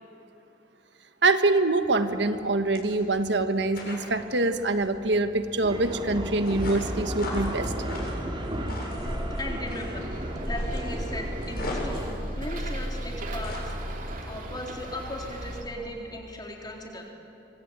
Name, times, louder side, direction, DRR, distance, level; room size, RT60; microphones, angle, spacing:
voice 1, 1.2-7.7, right 2 dB, 75° right, 9 dB, 1.4 m, -25 dB
sound 1, 1.8-13.7, left 1 dB, 55° left, 8.0 m, -39 dB
sound 2, 5.6-12.2, equal, 30° right, 3.6 m, -34 dB
voice 2, 8.8-12.1 12.4-17.1, left 1 dB, 25° left, 0 dB, 4.0 m, -38 dB
Bus, 9.9-15.6, right 1 dB, 50° right, 3.1 m, -36 dB
25.5 x 25.5 x 9.0 m, 3.0 s
head